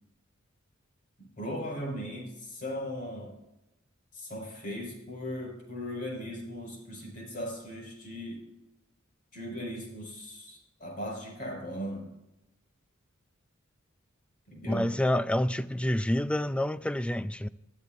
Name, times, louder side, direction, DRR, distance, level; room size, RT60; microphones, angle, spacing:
voice 1, 1.2-3.3 4.1-8.4 9.3-12.1 14.5-14.9, equal, 45° left, 5.2 m, -38 dB
voice 2, 14.7-17.5, left 1 dB, 5° left, 0.4 m, -28 dB
22.0 x 14.0 x 2.6 m
head